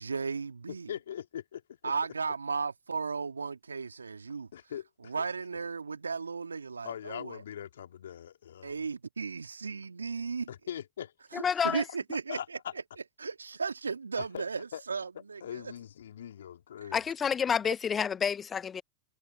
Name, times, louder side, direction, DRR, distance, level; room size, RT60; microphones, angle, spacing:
voice 1, 0.0-0.9 1.8-4.5 5.0-7.4 8.6-10.5 11.3-12.6 13.2-15.7 16.8-16.9, right 5 dB, 85° right, 2.1 m, -35 dB
voice 2, 0.9-1.9 4.5-5.2 6.8-8.7 10.5-11.1 12.3-12.7 14.2-14.4 14.7-14.8 15.4-17.0, left 10 dB, 70° left, 2.9 m, -41 dB
voice 3, 11.3-11.8 16.9-18.8, left 7 dB, 25° left, 0.6 m, -29 dB
figure-of-eight pair, 90°, 0 cm